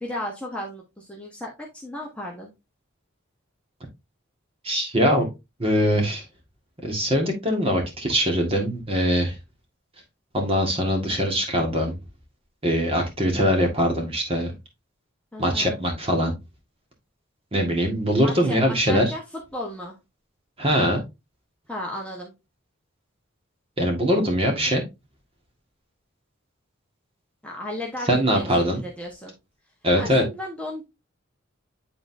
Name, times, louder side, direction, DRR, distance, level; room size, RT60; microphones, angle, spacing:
voice 1, 0.0-2.5 15.3-15.8 18.2-20.0 21.7-22.3 27.4-29.3 30.0-30.8, left 1 dB, 5° left, -2 dB, 1.2 m, -35 dB
voice 2, 4.6-5.3 5.6-6.2 6.8-9.4 10.3-12.0 12.6-14.5 15.4-16.3 17.5-19.1 20.6-21.0 23.8-24.8 28.1-28.8 29.8-30.2, equal, 25° right, 2 dB, 1.7 m, -22 dB
9.6 x 3.9 x 2.7 m, 0.23 s
head